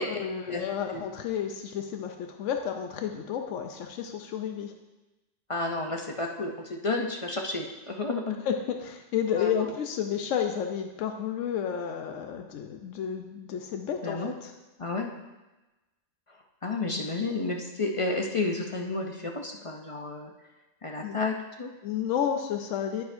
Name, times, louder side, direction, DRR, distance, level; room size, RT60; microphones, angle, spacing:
voice 1, 0.0-4.7 8.4-14.5 21.0-21.2 21.8-23.0, left 8 dB, 90° left, 5 dB, 1.0 m, -31 dB
voice 2, 5.5-8.4 9.3-9.6 14.0-14.3 14.8-15.1 16.6-20.3 20.8-21.7, left 3 dB, 35° left, 2 dB, 0.5 m, -31 dB
9.4 x 9.1 x 2.6 m, 1.1 s
omnidirectional pair, 1.2 m